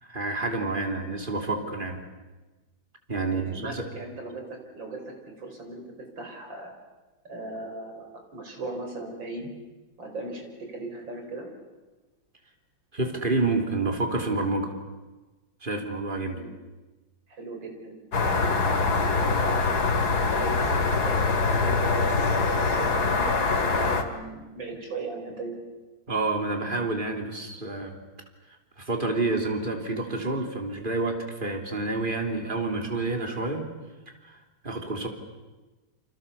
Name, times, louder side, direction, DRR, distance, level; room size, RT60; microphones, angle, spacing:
voice 1, 0.0-2.0 3.1-3.8 12.9-14.8 15.6-16.4 26.1-28.0 28.8-33.6 34.2-34.4 34.6-35.1, right 2 dB, 25° right, 3 dB, 3.4 m, -28 dB
voice 2, 3.2-5.8 6.2-6.7 7.3-9.5 10.0-11.5 16.3-16.5 17.3-18.0 18.3-19.7 20.3-25.6, right 2 dB, 70° right, 3 dB, 5.7 m, -38 dB
sound 1, 18.1-24.0, left 4 dB, 55° left, 2.6 m, -24 dB
29.0 x 27.0 x 7.1 m, 1.2 s
omnidirectional pair, 2.1 m